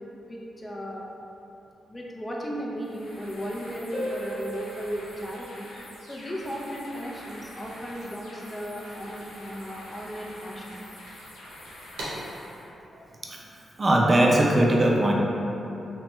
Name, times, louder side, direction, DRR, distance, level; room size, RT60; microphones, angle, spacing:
voice 1, 0.2-1.0 1.9-5.7 6.1-10.8, equal, 25° left, -3 dB, 0.5 m, -35 dB
sound 1, 2.8-12.7, left 1 dB, 90° left, 0.5 m, -46 dB
Harp, 3.9-6.4 9.9-10.0, right 1 dB, 50° left, 0.9 m, -37 dB
sound 2, 5.9-12.7, right 1 dB, 85° right, 0.6 m, -46 dB
voice 2, 12.9-13.4 13.8-15.1, right 1 dB, 40° right, -1 dB, 0.4 m, -21 dB
2.9 x 2.2 x 2.9 m, 2.9 s
supercardioid pair, 45°, 0 cm